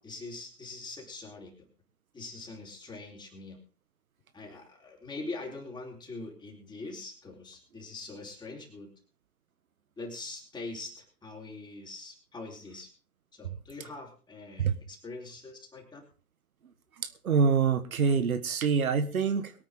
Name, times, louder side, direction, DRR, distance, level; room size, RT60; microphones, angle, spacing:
voice 1, 0.0-1.5 2.1-3.6 4.3-8.9 10.0-12.9 13.3-16.0, left 3 dB, 10° left, 0 dB, 4.1 m, -43 dB
voice 2, 17.0-19.5, right 6 dB, 65° right, 10 dB, 1.6 m, -26 dB
22.5 x 9.2 x 3.8 m, 0.37 s
figure-of-eight pair, 120°, 45 cm